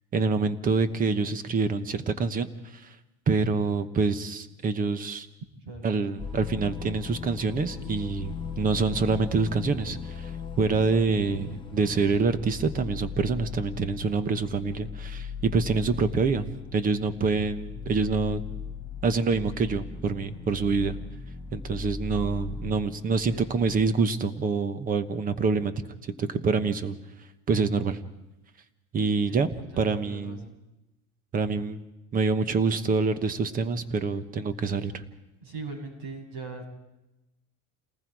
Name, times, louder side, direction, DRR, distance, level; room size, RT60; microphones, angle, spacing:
voice 1, 0.1-2.5 3.3-5.3 5.8-10.3 10.6-16.5 16.7-18.4 19.0-21.0 21.5-25.7 26.0-27.0 27.5-28.0 28.9-30.4 31.3-31.8 32.1-35.0, right 4 dB, 25° right, 11 dB, 1.0 m, -26 dB
sound 1, 6.2-23.9, left 5 dB, 15° left, 0.9 m, -38 dB
voice 2, 29.7-30.5 35.4-36.7, right 3 dB, 85° right, -1 dB, 7.8 m, -40 dB
29.5 x 19.5 x 4.7 m, 0.96 s
cardioid pair, 165°, 36 cm